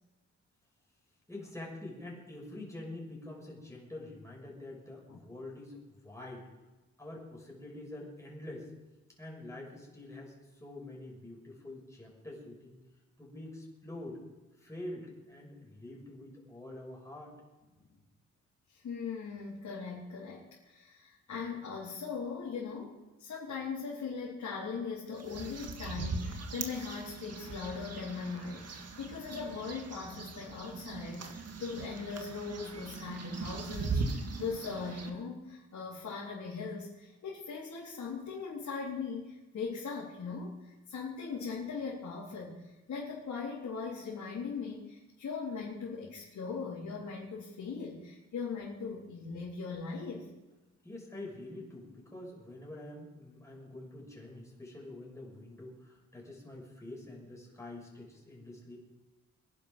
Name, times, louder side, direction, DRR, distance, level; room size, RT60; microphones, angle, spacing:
voice 1, 1.3-6.5 7.0-8.7 9.2-12.8 13.2-14.2 14.6-17.4 50.8-58.8, left 1 dB, 10° left, -3 dB, 6.3 m, -46 dB
voice 2, 18.7-50.3, left 5 dB, 75° left, -6 dB, 4.0 m, -40 dB
sound 1, 25.1-35.1, right 4 dB, 55° right, 1.9 m, -40 dB
23.0 x 11.0 x 5.4 m, 1.1 s
cardioid pair, 100°, 29 cm